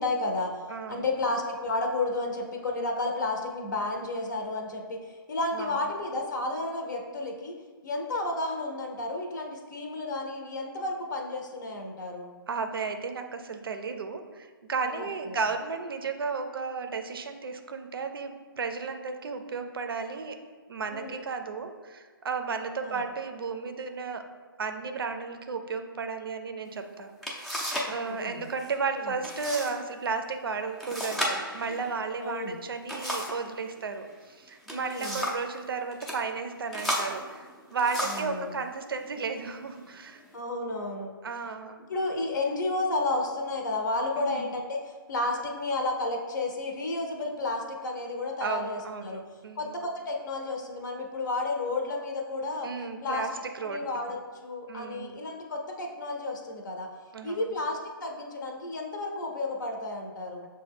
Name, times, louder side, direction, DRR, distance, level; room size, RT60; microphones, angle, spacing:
voice 1, 0.0-0.6 0.9-7.6 7.8-12.3 14.8-15.4 20.9-21.2 22.8-23.0 28.2-28.5 28.9-29.1 32.2-32.6 34.7-35.2 38.0-38.6 40.3-41.1 41.9-49.2 49.6-52.7 53.0-53.3 53.6-56.9 57.2-60.5, left 2 dB, 55° left, 2 dB, 0.6 m, -32 dB
voice 2, 0.7-1.1 5.5-5.8 12.5-20.4 20.7-24.3 24.6-40.2 41.2-41.9 44.2-44.5 48.4-49.8 52.6-53.9 54.7-55.1 57.1-57.6, right 4 dB, 70° right, 7 dB, 0.5 m, -34 dB
sound 1, 26.7-26.8 27.2-28.0 28.2-28.7 29.2-29.7 30.0-30.1 30.8-33.5 34.4-35.5 35.9-36.2 36.7-38.4 39.1-39.3 39.8-40.3, equal, ahead, 0.4 m, -33 dB
6.3 x 2.2 x 3.4 m, 1.5 s
figure-of-eight pair, 140°, 12 cm